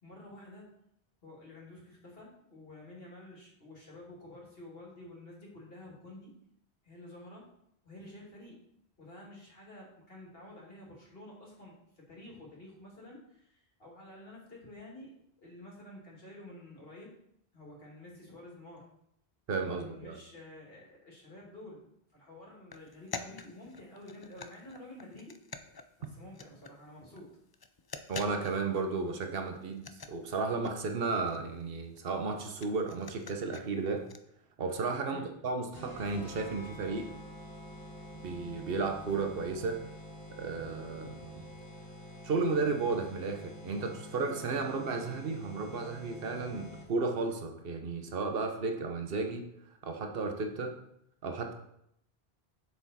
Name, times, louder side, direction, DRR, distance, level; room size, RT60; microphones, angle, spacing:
voice 1, 0.0-0.7 1.2-6.3 6.8-7.5 7.8-8.6 9.0-17.1 17.5-18.9 19.7-25.4 26.0-27.4 35.0-35.3, left 1 dB, 65° left, -3 dB, 2.6 m, -50 dB
voice 2, 19.5-20.2 28.1-34.0 34.6-37.1 38.2-39.8 40.4-41.4 42.2-49.5 49.8-50.8 51.2-51.5, right 4 dB, 65° right, 5 dB, 1.2 m, -33 dB
sound 1, 22.7-26.9 27.2-27.3 27.5-28.9 29.2-29.3 29.5-34.2, left 4 dB, 40° left, 0.3 m, -47 dB
sound 2, 35.7-47.1, equal, 20° left, 1.8 m, -47 dB
7.1 x 7.0 x 4.2 m, 0.75 s
omnidirectional pair, 1.0 m